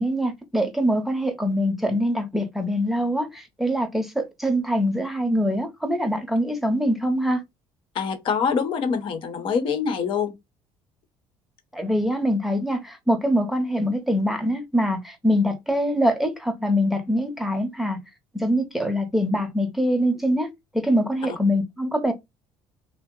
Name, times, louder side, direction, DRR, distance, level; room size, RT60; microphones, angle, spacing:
voice 1, 0.0-7.4 11.7-18.0 18.3-22.1, equal, ahead, 0.7 m, -24 dB
voice 2, 7.9-10.3, left 6 dB, 60° left, 0.9 m, -25 dB
2.8 x 2.0 x 3.7 m
supercardioid pair, 95°, 10 cm